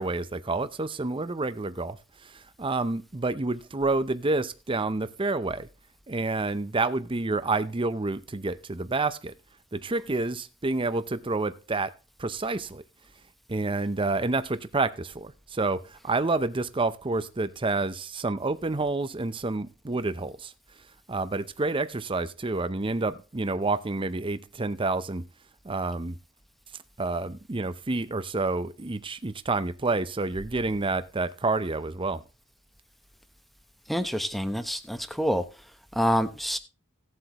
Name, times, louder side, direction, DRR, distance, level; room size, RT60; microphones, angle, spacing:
voice 1, 0.0-2.0 2.2-5.7 6.1-9.3 9.7-11.9 12.2-12.8 13.5-20.5 21.1-25.3 25.6-26.2 27.0-32.2, right 3 dB, 25° right, 0.7 m, -29 dB
voice 2, 33.9-35.4 35.9-36.6, equal, ahead, 0.9 m, -27 dB
17.0 x 7.9 x 3.0 m
head